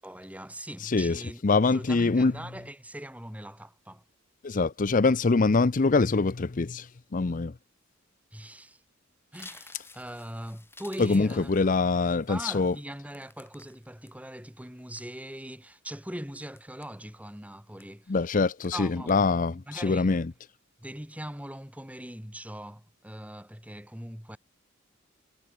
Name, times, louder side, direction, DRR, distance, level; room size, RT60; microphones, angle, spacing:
voice 1, 0.0-1.4 1.7-4.0 8.3-8.8 9.3-11.5 12.3-18.2 18.7-19.2 19.5-20.2 20.8-24.4, right 1 dB, 5° right, 7.0 m, -41 dB
voice 2, 0.8-2.3 4.4-7.5 11.0-12.7 18.1-20.3, left 3 dB, 40° left, 0.6 m, -24 dB
sound 1, 9.3-14.1 14.6-15.4 15.9-16.1 16.6-17.3 17.8-18.1 18.4-18.8 19.1-19.5 19.8-20.1, left 3 dB, 10° left, 6.0 m, -53 dB
head